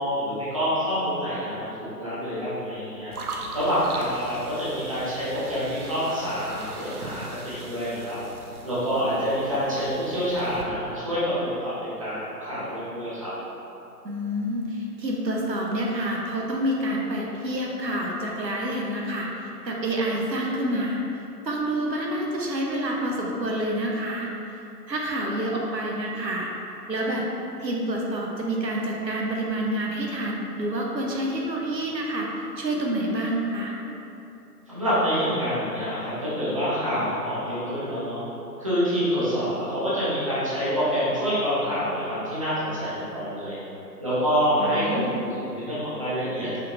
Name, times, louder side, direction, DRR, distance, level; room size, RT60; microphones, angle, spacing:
voice 1, 0.0-3.1 3.5-8.2 8.6-13.3 34.7-38.2 38.6-43.5 44.0-46.6, equal, 20° right, -11 dB, 0.6 m, -27 dB
sound 1, 3.1-10.6, right 3 dB, 60° right, 0.6 m, -40 dB
voice 2, 14.0-21.0 21.4-24.3 24.9-26.5 26.9-27.2 27.6-33.7 44.6-45.3, right 1 dB, 80° right, -1 dB, 1.0 m, -28 dB
5.4 x 3.8 x 2.6 m, 2.9 s
figure-of-eight pair, 145°, 50 cm